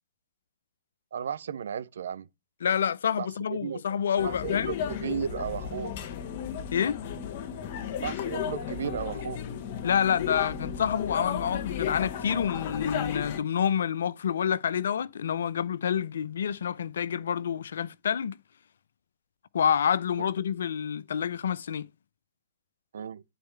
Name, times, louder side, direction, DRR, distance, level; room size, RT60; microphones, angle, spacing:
voice 1, 1.1-2.3 3.2-3.8 4.2-5.9 8.0-9.4 22.9-23.2, right 8 dB, 65° right, 0.5 m, -34 dB
voice 2, 2.6-4.7 6.7-7.0 9.8-18.4 19.5-21.9, left 8 dB, 65° left, 0.5 m, -28 dB
sound 1, 4.2-13.4, left 8 dB, 50° left, 1.3 m, -34 dB
10.5 x 4.2 x 4.4 m
figure-of-eight pair, 105°, 0 cm